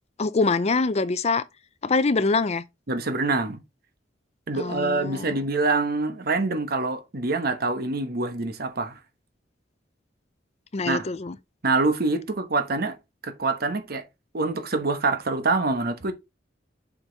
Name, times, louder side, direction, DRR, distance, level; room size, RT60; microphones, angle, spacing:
voice 1, 0.2-1.4 1.8-2.6 4.5-5.4 10.7-11.3, left 3 dB, 35° left, 0.5 m, -24 dB
voice 2, 2.9-3.6 4.5-9.0 10.8-11.1 11.6-13.0 13.2-14.0 14.3-16.1, right 3 dB, 55° right, 1.1 m, -25 dB
7.2 x 5.2 x 4.0 m
head